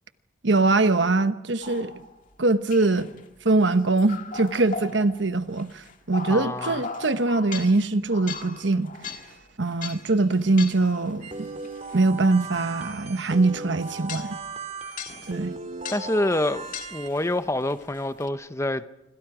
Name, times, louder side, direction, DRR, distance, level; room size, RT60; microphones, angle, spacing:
voice 1, 0.4-2.0 2.4-3.1 3.4-8.9 9.6-11.5 11.9-14.4 15.3-15.5, right 2 dB, 70° right, 1.1 m, -22 dB
sound 1, 1.6-2.3 2.7-12.0 12.5-12.6 13.3-13.4 13.8-14.5 15.0-15.5 15.9-16.2 16.6-18.3, left 5 dB, 45° left, 2.1 m, -39 dB
voice 2, 6.3-6.8 14.9-15.0 15.9-18.9, left 1 dB, 15° left, 0.8 m, -27 dB
sound 2, 11.2-17.1, right 4 dB, 40° right, 2.6 m, -37 dB
27.0 x 25.5 x 5.0 m
head